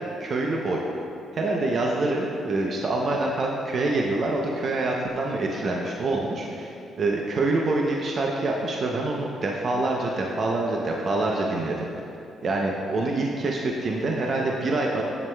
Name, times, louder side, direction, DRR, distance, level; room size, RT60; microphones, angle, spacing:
voice 1, 0.2-0.8 1.3-11.9 12.4-15.0, right 2 dB, 50° right, -1 dB, 0.6 m, -26 dB
8.1 x 7.4 x 2.3 m, 2.6 s
cardioid pair, 90°, 0 cm